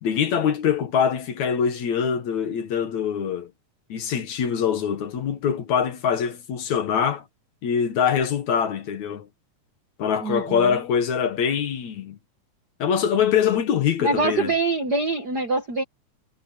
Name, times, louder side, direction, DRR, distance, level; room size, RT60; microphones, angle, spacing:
voice 1, 0.0-3.5 3.9-7.2 7.6-9.3 10.0-12.2 12.8-14.5, left 7 dB, 65° left, 2.8 m, -23 dB
voice 2, 10.2-10.8 14.0-15.8, right 3 dB, 45° right, 1.3 m, -24 dB
omnidirectional pair, 3.7 m